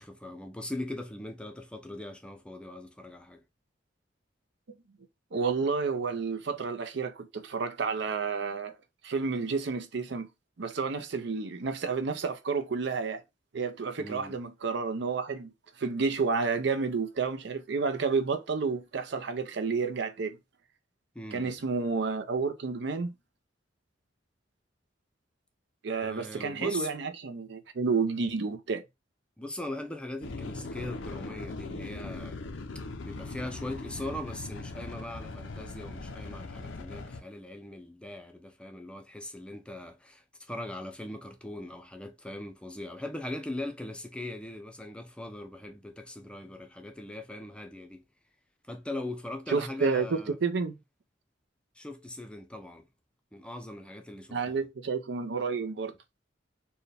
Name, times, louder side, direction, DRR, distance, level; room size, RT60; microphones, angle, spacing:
voice 1, 0.0-3.4 14.0-14.4 21.1-21.6 26.0-26.9 29.4-32.4 33.0-48.0 48.7-50.4 51.8-52.9 53.3-54.6, left 1 dB, 5° left, 0.5 m, -40 dB
voice 2, 5.3-8.7 9.0-10.3 10.6-13.2 13.5-15.5 15.8-20.4 21.3-23.1 25.8-28.8 49.5-50.8 54.3-55.9, right 4 dB, 65° right, 0.5 m, -30 dB
sound 1, 30.2-37.2, left 3 dB, 85° left, 0.6 m, -40 dB
4.4 x 2.2 x 3.3 m
head